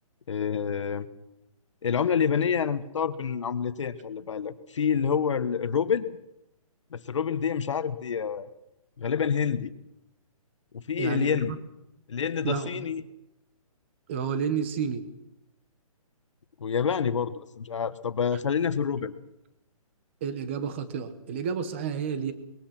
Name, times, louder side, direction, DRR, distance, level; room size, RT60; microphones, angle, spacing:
voice 1, 0.3-1.1 1.8-6.1 6.9-8.5 9.0-9.7 10.7-11.5 12.1-13.0 16.6-19.1, left 7 dB, 55° left, 12 dB, 1.4 m, -27 dB
voice 2, 11.0-11.6 12.4-12.9 14.1-15.0 20.2-22.3, right 7 dB, 20° right, 12 dB, 1.3 m, -30 dB
22.5 x 21.5 x 6.0 m, 0.87 s
hypercardioid pair, 180°, 19 cm